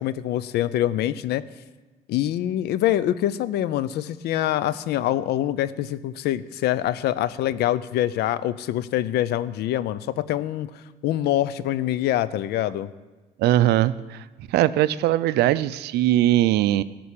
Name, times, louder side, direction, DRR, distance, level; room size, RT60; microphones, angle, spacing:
voice 1, 0.0-1.4 2.1-10.7 11.0-12.9, left 12 dB, 75° left, 16 dB, 0.6 m, -25 dB
voice 2, 13.4-16.8, right 14 dB, 75° right, 16 dB, 0.5 m, -21 dB
14.0 x 6.1 x 8.5 m, 1.2 s
cardioid pair, 110°, 17 cm